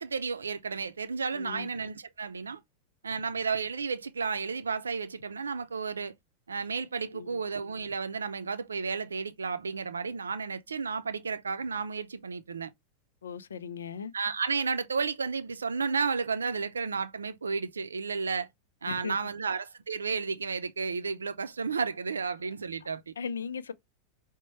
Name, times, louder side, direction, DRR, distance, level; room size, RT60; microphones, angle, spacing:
voice 1, 0.0-2.6 3.0-6.1 6.5-12.7 14.1-18.5 18.8-23.1, right 5 dB, 75° right, 0.5 m, -32 dB
voice 2, 1.3-1.7 7.1-7.4 13.2-14.1 18.9-19.1 23.2-23.7, left 6 dB, 70° left, 0.4 m, -37 dB
5.1 x 2.2 x 3.0 m
figure-of-eight pair, 90°, 0 cm